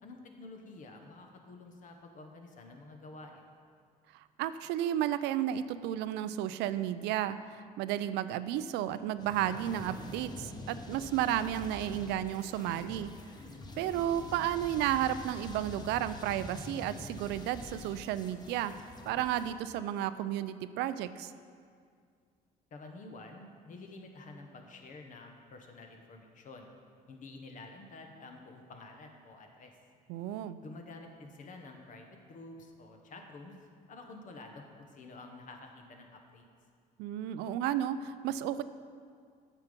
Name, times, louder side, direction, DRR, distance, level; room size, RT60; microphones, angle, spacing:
voice 1, 0.0-3.5 22.7-26.8 27.1-29.7 30.6-33.5 33.9-36.5, left 2 dB, 50° left, 3 dB, 1.3 m, -49 dB
voice 2, 4.1-13.1 13.8-18.8 19.1-21.3 30.1-30.6 37.0-38.6, right 11 dB, 90° right, 13 dB, 0.4 m, -33 dB
sound 1, 9.2-19.5, left 2 dB, 25° left, 0.9 m, -46 dB
9.0 x 7.1 x 5.2 m, 2.1 s
cardioid pair, 110°, 17 cm